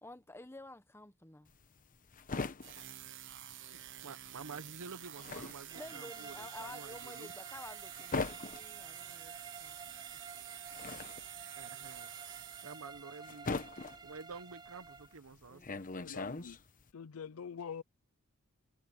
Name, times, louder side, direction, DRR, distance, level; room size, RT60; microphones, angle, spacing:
voice 1, 0.0-1.5 5.7-9.8 10.1-10.2 15.5-16.0, left 2 dB, 10° left, 1.3 m, -51 dB
sound 1, 1.5-4.0 4.3-16.9, left 3 dB, 40° left, 1.1 m, -42 dB
sound 2, 2.6-13.2, right 13 dB, 55° right, 1.2 m, -49 dB
voice 2, 3.7-7.3 11.5-12.1 12.6-13.7 14.0-15.8, right 4 dB, 70° right, 0.9 m, -50 dB
sound 3, 5.7-15.2, right 5 dB, 20° right, 0.5 m, -51 dB
voice 3, 16.0-16.6 16.9-17.8, left 6 dB, 70° left, 0.5 m, -45 dB
head